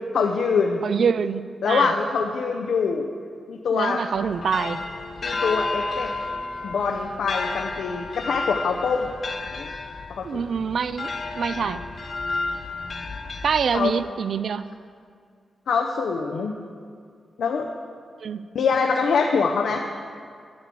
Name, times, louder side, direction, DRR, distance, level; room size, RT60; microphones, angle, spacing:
voice 1, 0.1-0.8 1.6-3.1 3.5-4.0 5.2-6.1 6.6-9.1 9.6-9.7 10.2-10.4 13.7-14.0 15.7-16.5 17.4-17.7 18.5-19.8, left 5 dB, 80° left, 2 dB, 0.6 m, -24 dB
voice 2, 0.8-1.9 3.7-4.8 10.2-11.8 13.4-14.7 18.2-18.4, right 6 dB, 60° right, 14 dB, 0.3 m, -25 dB
sound 1, 4.1-14.1, left 3 dB, 35° left, 0.6 m, -32 dB
10.5 x 6.2 x 8.3 m, 2.1 s
wide cardioid pair, 170°, 0 cm